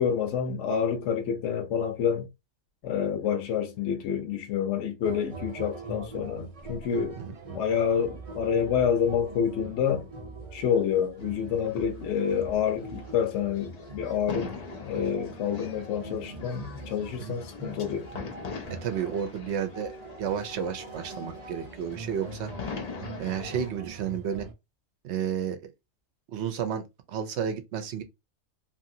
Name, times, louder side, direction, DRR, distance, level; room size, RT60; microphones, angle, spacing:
voice 1, 0.0-2.3 2.8-7.2 7.5-10.0 10.5-14.5 14.8-18.1, left 8 dB, 70° left, 0.9 m, -28 dB
sound 1, 5.0-24.5, right 3 dB, 50° right, 0.4 m, -43 dB
sound 2, 11.2-23.7, left 5 dB, 50° left, 0.5 m, -42 dB
voice 2, 18.8-22.5 23.2-24.5 25.0-25.7 26.3-28.0, right 8 dB, 65° right, 0.8 m, -32 dB
2.7 x 2.7 x 2.6 m
omnidirectional pair, 1.4 m